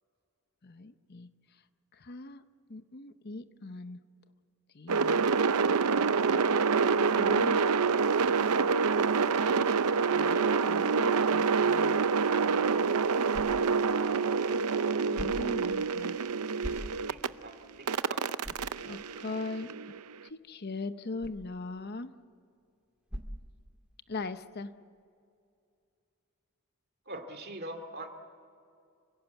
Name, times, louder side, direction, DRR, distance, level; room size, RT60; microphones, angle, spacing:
voice 1, 0.6-1.3 1.9-2.4 2.7-4.0 4.7-5.2 7.1-7.7 10.1-12.0 12.4-12.9 15.1-16.2 16.6-16.9 18.8-22.2 24.1-24.8, left 3 dB, 45° left, 11 dB, 0.8 m, -41 dB
sound 1, 4.9-17.3 17.9-20.0, right 5 dB, 90° right, 0.6 m, -27 dB
sound 2, 12.5-24.2, equal, 5° right, 1.8 m, -48 dB
voice 2, 17.1-18.3 27.1-28.1, right 1 dB, 45° right, 6 dB, 2.4 m, -43 dB
28.5 x 17.0 x 8.3 m, 2.4 s
head